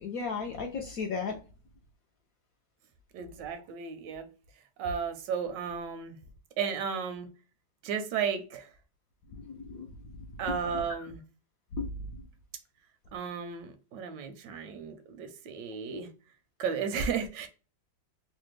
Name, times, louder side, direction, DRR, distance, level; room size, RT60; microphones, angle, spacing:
voice 1, 0.0-1.4 9.4-9.9 11.8-11.9, left 5 dB, 75° left, 2 dB, 0.8 m, -34 dB
voice 2, 3.1-4.3 4.8-6.2 6.6-7.3 7.8-8.7 10.4-11.2 13.1-16.1 16.6-17.5, right 6 dB, 80° right, 8 dB, 1.2 m, -34 dB
3.2 x 2.2 x 3.1 m, 0.35 s
omnidirectional pair, 2.0 m